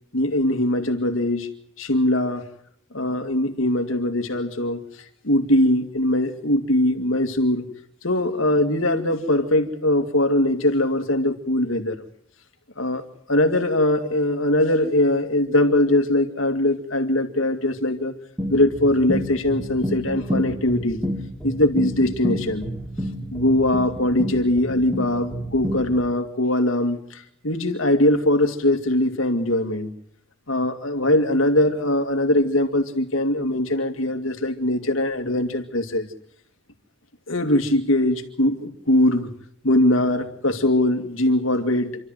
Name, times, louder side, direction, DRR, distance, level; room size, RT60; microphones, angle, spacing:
voice 1, 0.1-1.5 1.8-2.4 2.9-4.8 5.2-7.7 8.0-12.0 12.8-13.0 13.3-18.1 18.5-21.0 21.4-22.7 23.3-29.9 30.5-36.1 37.3-39.3 39.6-42.0, left 1 dB, 70° left, 5 dB, 2.3 m, -21 dB
sound 1, 18.4-26.1, equal, 5° right, 3.3 m, -30 dB
28.0 x 13.0 x 9.1 m, 0.70 s
head